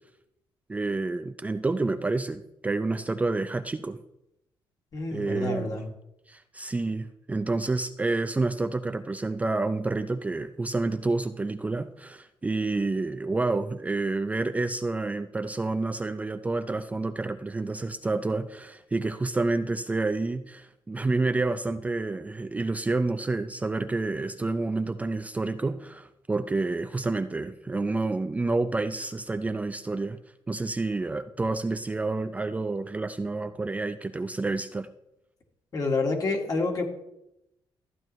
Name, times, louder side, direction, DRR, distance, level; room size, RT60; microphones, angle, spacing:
voice 1, 0.7-4.0 5.1-5.8 6.3-30.2 30.5-34.9, right 3 dB, 15° right, 9 dB, 0.4 m, -29 dB
voice 2, 4.9-5.9 35.7-36.9, left 3 dB, 45° left, 2 dB, 2.1 m, -28 dB
14.0 x 9.2 x 3.1 m, 0.84 s
cardioid pair, 120°, 9 cm